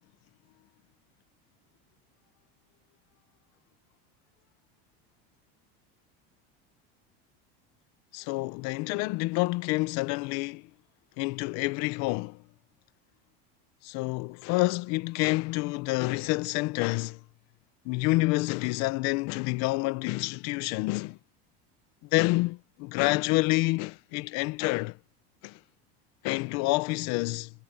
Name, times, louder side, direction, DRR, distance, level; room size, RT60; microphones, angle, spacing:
voice 1, 8.1-10.6 11.2-12.4 13.8-17.2 17.8-21.2 22.1-25.0 25.4-25.6 26.2-27.5, left 23 dB, 60° left, 0.9 m, -28 dB
supercardioid pair, 140°, 31 cm